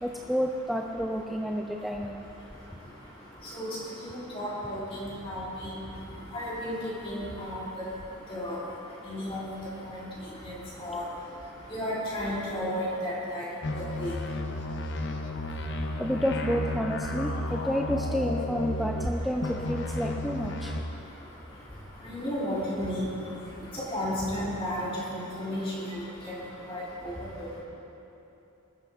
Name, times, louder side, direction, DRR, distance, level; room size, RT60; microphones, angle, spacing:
voice 1, 0.0-2.3 15.3-15.4 16.0-20.7, equal, ahead, 1 dB, 0.4 m, -30 dB
voice 2, 4.0-5.8 6.3-7.5 8.3-8.6 9.1-9.4 9.9-10.0 10.4-10.5 10.8-11.0 11.7-13.5 14.0-14.1 22.0-23.1 23.9-26.3 26.7-27.5, equal, 25° left, -8 dB, 3.5 m, -33 dB
sound 1, 13.6-19.1 19.4-20.8, left 1 dB, 55° left, 0.9 m, -32 dB
20.5 x 13.0 x 3.6 m, 2.9 s
head